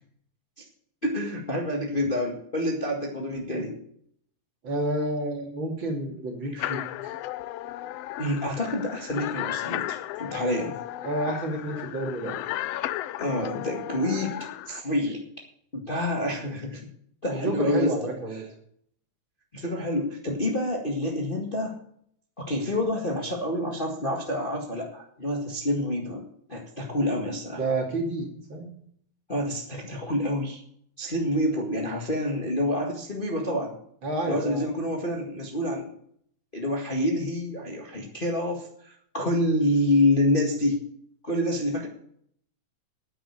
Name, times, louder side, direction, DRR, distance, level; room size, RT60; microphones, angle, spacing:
voice 1, 1.0-3.7 8.2-10.8 13.2-14.3 14.7-15.2 15.7-16.8 17.2-18.1 19.5-21.7 22.4-26.2 26.5-27.6 29.3-30.6 31.0-33.7 34.2-35.9 36.5-40.8 41.2-41.9, left 1 dB, 20° left, 0 dB, 1.6 m, -27 dB
voice 2, 4.6-7.2 11.0-12.4 17.3-18.4 27.6-28.7 34.0-34.7, right 1 dB, 40° right, 1 dB, 3.0 m, -30 dB
sound 1, 6.6-14.8, left 14 dB, 80° left, 1.4 m, -34 dB
9.4 x 9.1 x 8.5 m, 0.66 s
omnidirectional pair, 3.4 m